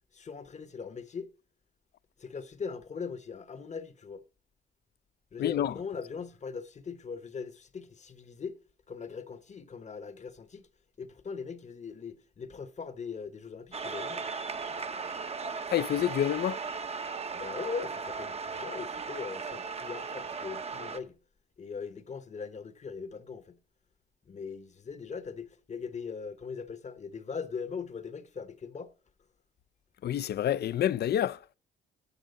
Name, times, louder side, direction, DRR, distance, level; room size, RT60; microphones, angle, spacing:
voice 1, 0.1-1.3 2.2-4.2 5.3-8.6 8.9-10.7 11.0-14.2 17.3-21.2 21.6-23.6 24.3-28.9, left 5 dB, 35° left, 1.0 m, -40 dB
voice 2, 5.4-5.8 15.7-16.6 30.0-31.5, left 11 dB, 55° left, 0.5 m, -28 dB
sound 1, 13.7-21.0, right 4 dB, 30° right, 0.8 m, -37 dB
11.0 x 7.5 x 5.3 m
cardioid pair, 90°, 20 cm